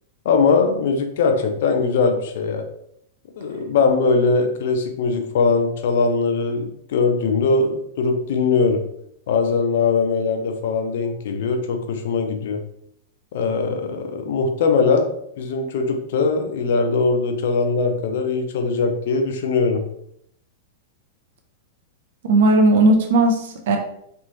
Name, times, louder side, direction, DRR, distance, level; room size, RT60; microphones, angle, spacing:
voice 1, 0.2-2.6 3.4-8.8 9.3-12.6 13.3-15.1 15.4-19.8, left 4 dB, 55° left, 5 dB, 0.5 m, -21 dB
voice 2, 22.2-23.8, right 2 dB, 55° right, 3 dB, 0.6 m, -16 dB
3.3 x 2.9 x 2.8 m, 0.72 s
figure-of-eight pair, 95°, 0 cm